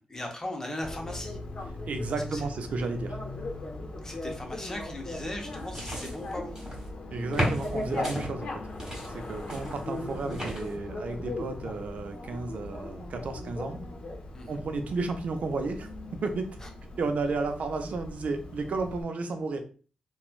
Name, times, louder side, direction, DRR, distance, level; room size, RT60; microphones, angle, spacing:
voice 1, 0.0-1.4 2.3-2.4 4.0-6.6 14.3-14.6 16.6-16.7, left 1 dB, 20° left, 1 dB, 0.7 m, -38 dB
Bicycle, 0.8-19.0, left 2 dB, 65° left, 0.7 m, -39 dB
voice 2, 1.9-3.2 7.1-8.5 9.1-13.8 14.5-15.9 16.2-16.5 17.0-19.6, right 3 dB, 65° right, 7 dB, 0.5 m, -32 dB
sound 1, 5.5-6.9 7.3-8.3 8.8-10.8, right 1 dB, 15° right, 1.5 m, -35 dB
2.9 x 2.2 x 2.4 m, 0.39 s
cardioid pair, 75°, 3 cm